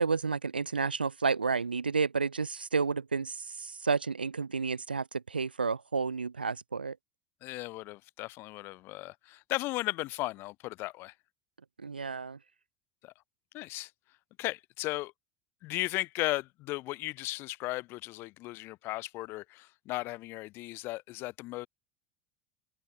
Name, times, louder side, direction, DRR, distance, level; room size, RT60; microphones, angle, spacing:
voice 1, 0.0-7.0 11.8-12.4, right 5 dB, 85° right, 0.4 m, -31 dB
voice 2, 7.4-11.1 13.0-13.1 13.5-13.9 14.4-15.1 15.6-21.7, left 20 dB, 50° left, 0.7 m, -36 dB
open air
figure-of-eight pair, 75°, 5 cm